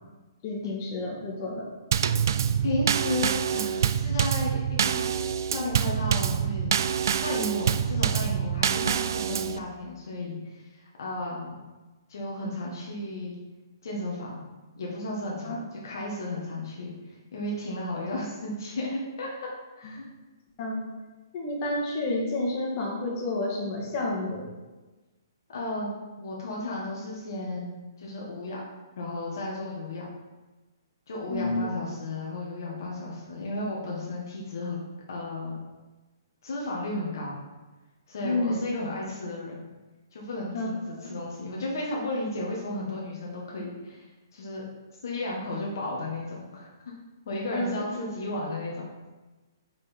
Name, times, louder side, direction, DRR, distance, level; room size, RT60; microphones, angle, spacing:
voice 1, 0.4-1.7 15.4-15.6 20.6-20.8 21.3-24.5 31.3-31.7 38.2-38.6 40.5-40.7 41.0-41.1 47.5-47.8, left 2 dB, 40° left, -2 dB, 1.9 m, -30 dB
Drum kit / Snare drum / Bass drum, 1.9-9.6, right 8 dB, 60° right, 0.3 m, -26 dB
voice 2, 2.6-5.1 5.4-6.7 7.2-11.6 12.1-13.3 13.8-14.4 14.8-19.5 19.8-20.0 25.5-28.6 29.0-30.1 31.1-34.8 35.1-35.5 36.4-37.4 38.1-39.5 40.1-44.1 44.3-44.6 45.0-46.7 47.3-49.1, left 1 dB, 65° left, -3 dB, 1.4 m, -34 dB
5.4 x 5.3 x 4.2 m, 1.2 s
hypercardioid pair, 130°, 2 cm